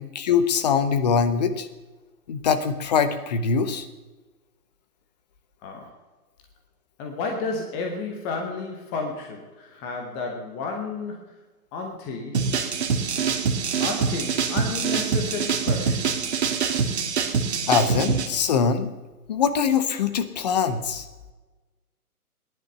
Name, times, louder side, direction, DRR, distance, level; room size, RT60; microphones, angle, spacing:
voice 1, 0.0-1.7 2.3-3.9 17.7-18.9 19.3-21.1, left 6 dB, 30° left, 10 dB, 1.0 m, -23 dB
voice 2, 5.6-5.9 7.0-11.4 11.7-12.4 13.8-16.4, left 4 dB, 10° left, 2 dB, 0.7 m, -32 dB
sound 1, 12.3-18.3, right 6 dB, 45° right, 2.0 m, -24 dB
17.5 x 11.0 x 6.8 m, 1.2 s
figure-of-eight pair, 140°, 46 cm